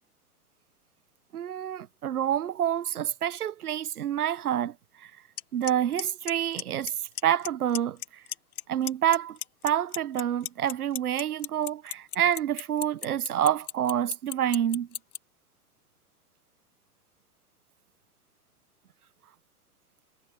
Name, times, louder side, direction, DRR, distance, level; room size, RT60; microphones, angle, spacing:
voice 1, 1.3-5.1 5.5-6.9 7.2-8.2 8.7-9.4 9.6-14.9, right 10 dB, 75° right, 1.4 m, -28 dB
Clock, 5.4-5.5 5.7-6.0 6.3-6.9 7.2-7.5 7.7-8.6 8.9-15.2, left 11 dB, 70° left, 1.1 m, -33 dB
figure-of-eight pair, 105°, 45 cm